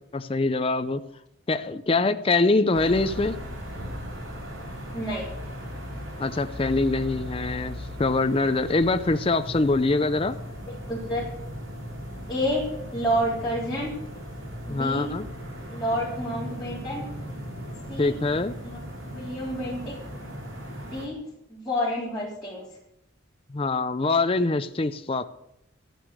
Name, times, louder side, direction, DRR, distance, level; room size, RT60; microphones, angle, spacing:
voice 1, 0.1-1.0 1.5-3.4 6.2-10.4 14.7-15.3 18.0-18.5 23.5-25.2, left 3 dB, 25° left, 9 dB, 0.5 m, -24 dB
sound 1, 2.7-21.1, equal, 70° right, 3.7 m, -37 dB
voice 2, 4.9-5.3 10.9-11.2 12.3-12.6 12.9-13.9 14.7-15.1 15.7-17.0 17.9-18.1 18.6-18.8 19.2-19.9 20.9-21.2 21.5-22.6, equal, 5° left, -11 dB, 3.6 m, -29 dB
13.0 x 9.2 x 6.4 m, 0.81 s
head